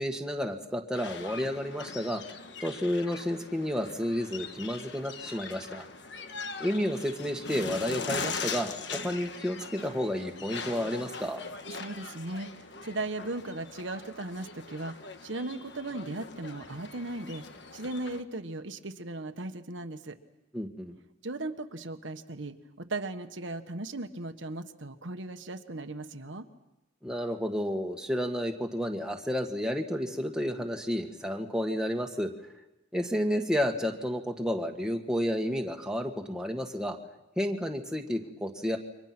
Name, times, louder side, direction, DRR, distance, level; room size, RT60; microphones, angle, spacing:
voice 1, 0.0-2.2 2.6-5.9 6.6-11.5 20.5-20.9 27.0-32.3 32.9-37.0 37.4-38.8, equal, 5° right, 2 dB, 1.7 m, -31 dB
sound 1, 0.9-18.2, left 4 dB, 60° left, 1.4 m, -41 dB
voice 2, 11.7-17.4 17.7-20.2 21.2-26.5, right 2 dB, 70° right, 7 dB, 1.3 m, -37 dB
29.0 x 24.5 x 6.1 m, 0.93 s
head